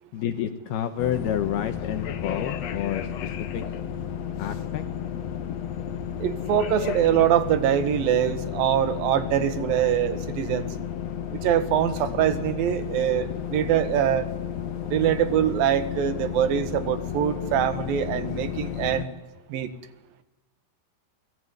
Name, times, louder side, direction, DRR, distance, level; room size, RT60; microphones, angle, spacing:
voice 1, 0.1-3.6 4.4-4.8, left 10 dB, 70° left, 7 dB, 2.9 m, -29 dB
sound 1, 1.0-19.1, left 9 dB, 90° left, 1.4 m, -32 dB
voice 2, 6.2-10.7 11.3-14.3 14.9-19.2 19.5-19.7, right 10 dB, 60° right, 11 dB, 3.1 m, -23 dB
29.0 x 20.5 x 9.7 m, 1.1 s
omnidirectional pair, 5.0 m